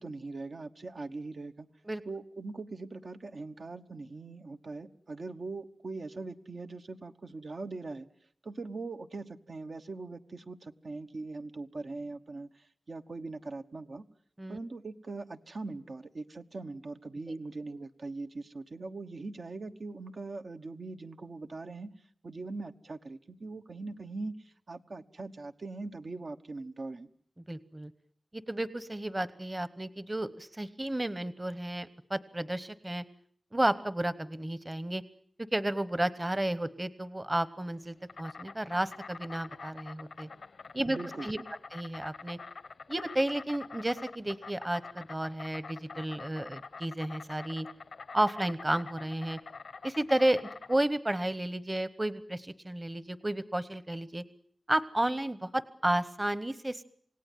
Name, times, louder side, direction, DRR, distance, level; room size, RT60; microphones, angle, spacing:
voice 1, 0.0-1.7 2.0-8.1 8.4-14.0 14.5-21.9 22.2-27.1 40.9-41.4, right 3 dB, 65° right, 6 dB, 1.1 m, -41 dB
voice 2, 27.5-27.9 28.3-33.0 33.5-35.0 35.5-40.3 40.7-41.4 41.7-42.4 42.9-47.7 48.1-49.4 49.8-54.2 54.7-56.8, right 1 dB, 20° right, 15 dB, 1.0 m, -32 dB
Insect, 37.7-50.7, left 4 dB, 90° left, 1.1 m, -46 dB
28.0 x 17.5 x 9.2 m, 0.62 s
wide cardioid pair, 80°, 0 cm